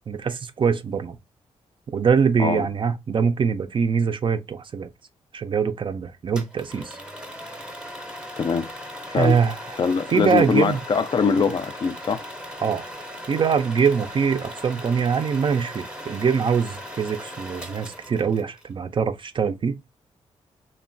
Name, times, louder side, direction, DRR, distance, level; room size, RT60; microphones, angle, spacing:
voice 1, 0.1-1.2 1.9-4.9 5.3-7.0 9.1-9.6 10.1-10.8 12.6-12.8 13.3-19.8, right 6 dB, 45° right, 0.4 m, -23 dB
sound 1, 6.3-18.7, equal, 10° right, 0.7 m, -38 dB
voice 2, 8.4-8.7 9.1-9.4 9.8-12.2, left 6 dB, 40° left, 0.4 m, -22 dB
3.0 x 2.1 x 2.5 m
cardioid pair, 70°, 12 cm